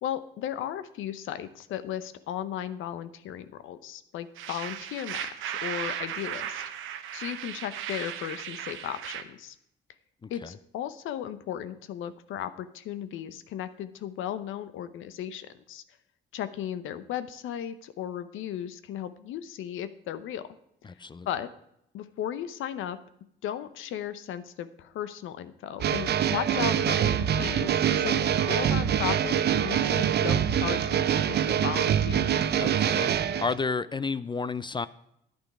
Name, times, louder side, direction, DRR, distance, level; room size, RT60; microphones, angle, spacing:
voice 1, 0.0-6.6 7.1-9.5 10.3-15.8 16.3-20.4 21.3-21.5 21.9-23.0 23.4-32.3, left 10 dB, 85° left, 13 dB, 0.8 m, -36 dB
sound 1, 4.4-9.2, right 10 dB, 90° right, 0.9 m, -36 dB
voice 2, 20.8-21.3 32.6-34.9, left 4 dB, 25° left, 16 dB, 0.4 m, -32 dB
sound 2, 25.8-33.5, right 9 dB, 55° right, 0.6 m, -25 dB
10.5 x 9.0 x 4.8 m, 0.77 s
cardioid pair, 90°, 20 cm